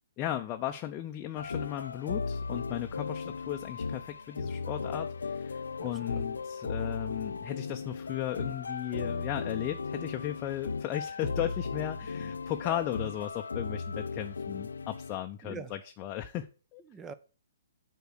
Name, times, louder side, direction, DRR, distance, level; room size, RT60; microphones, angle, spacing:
voice 1, 0.2-16.8, left 12 dB, 25° left, 5 dB, 0.6 m, -36 dB
sound 1, 1.4-15.2, left 4 dB, 70° left, 0.4 m, -36 dB
voice 2, 5.8-6.2 15.4-15.7 16.8-17.1, right 5 dB, 15° right, 14 dB, 0.5 m, -45 dB
8.1 x 4.6 x 6.3 m, 0.36 s
figure-of-eight pair, 125°, 0 cm